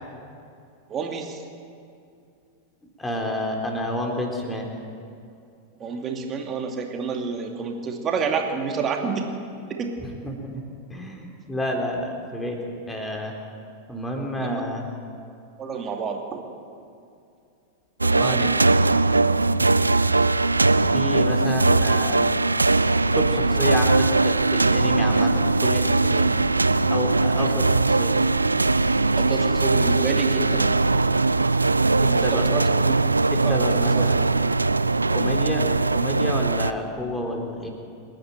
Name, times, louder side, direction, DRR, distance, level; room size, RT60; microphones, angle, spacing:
voice 1, 0.9-1.4 5.8-9.3 9.7-10.0 14.4-14.6 15.6-16.4 18.1-18.6 27.4-27.6 29.2-30.7 32.0-33.0 33.4-34.2 35.1-35.4, right 5 dB, 25° right, 2 dB, 2.7 m, -29 dB
voice 2, 3.0-4.7 10.2-10.6 10.9-12.6 12.9-13.3 13.9-14.9 18.0-18.6 20.9-22.2 23.1-26.3 26.9-28.1 32.0-32.4 33.3-34.2 35.1-37.7, equal, 10° left, 1 dB, 3.7 m, -29 dB
sound 1, 18.0-36.7, right 3 dB, 80° right, 0.5 m, -20 dB
28.5 x 10.5 x 9.2 m, 2.5 s
figure-of-eight pair, 90°, 0 cm